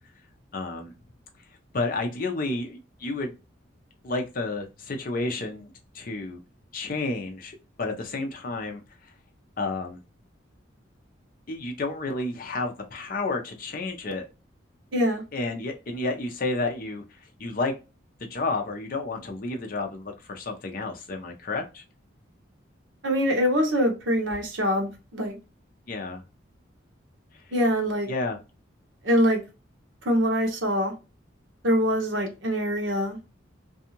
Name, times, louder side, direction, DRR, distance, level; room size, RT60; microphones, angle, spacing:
voice 1, 0.5-0.9 1.7-3.3 4.0-5.7 5.9-6.4 6.7-8.8 9.6-10.0 11.5-14.2 15.3-17.0 17.4-17.7 18.2-21.8 25.9-26.2 28.1-28.4, left 3 dB, 45° left, 4 dB, 0.6 m, -31 dB
voice 2, 14.9-15.2 23.0-25.4 27.5-28.1 29.0-29.4 30.0-30.9 31.6-33.2, equal, 70° right, 2 dB, 0.9 m, -24 dB
2.6 x 2.3 x 2.8 m, 0.29 s
head